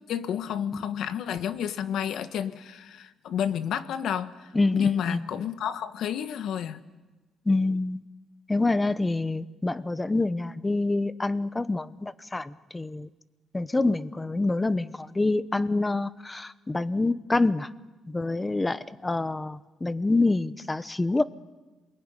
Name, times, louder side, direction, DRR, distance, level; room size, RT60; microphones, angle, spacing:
voice 1, 0.1-6.8, left 9 dB, 75° left, 11 dB, 1.4 m, -30 dB
voice 2, 4.5-5.3 7.5-8.0 8.5-13.1 13.5-17.7 18.1-21.2, left 2 dB, 15° left, 15 dB, 0.9 m, -26 dB
27.5 x 21.5 x 9.9 m, 1.2 s
cardioid pair, 125°, 0 cm